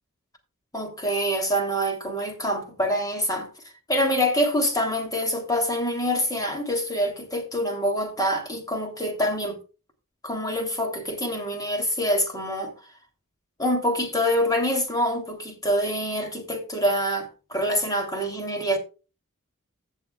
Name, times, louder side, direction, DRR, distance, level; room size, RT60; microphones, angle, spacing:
voice 1, 0.7-3.5 3.9-9.6 10.2-12.7 13.6-18.8, equal, 15° left, 3.2 m, -25 dB
16.0 x 7.2 x 2.4 m
head